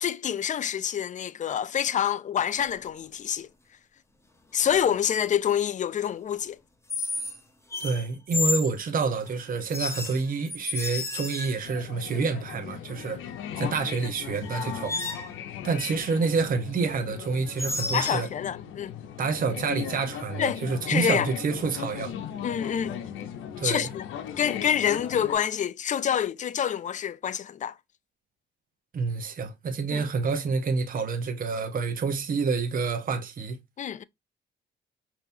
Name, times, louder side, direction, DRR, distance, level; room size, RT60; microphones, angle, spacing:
voice 1, 0.0-3.5 4.5-6.6 17.9-18.9 20.4-21.3 22.4-23.0 23.6-24.1 24.4-27.7 29.9-30.0 33.8-34.0, left 9 dB, 40° left, 0.4 m, -27 dB
sound 1, 2.6-2.9 4.7-5.0 6.9-7.4 7.7-8.7 9.7-11.7 13.9-14.0 14.4-15.3 17.6-18.3, left 3 dB, 15° left, 0.9 m, -31 dB
voice 2, 7.8-13.2 13.6-15.0 15.6-18.3 19.2-22.1 23.6-23.9 28.9-33.6, right 4 dB, 45° right, 0.9 m, -28 dB
sound 2, 11.6-25.3, left 9 dB, 85° left, 0.7 m, -38 dB
5.3 x 2.9 x 2.6 m
cardioid pair, 90°, 20 cm